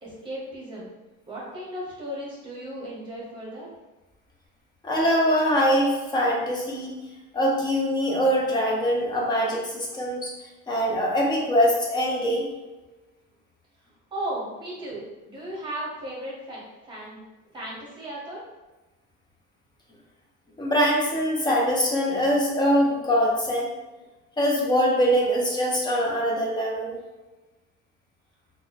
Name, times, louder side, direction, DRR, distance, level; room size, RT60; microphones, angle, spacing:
voice 1, 0.0-0.9 1.3-3.7 14.1-17.2 17.5-18.4, right 1 dB, 15° right, -6 dB, 0.9 m, -35 dB
voice 2, 4.8-6.9 7.3-10.3 10.7-12.5 20.6-23.7 24.4-27.0, equal, 15° left, -2 dB, 0.5 m, -23 dB
4.0 x 2.1 x 2.3 m, 1.1 s
cardioid pair, 155°, 29 cm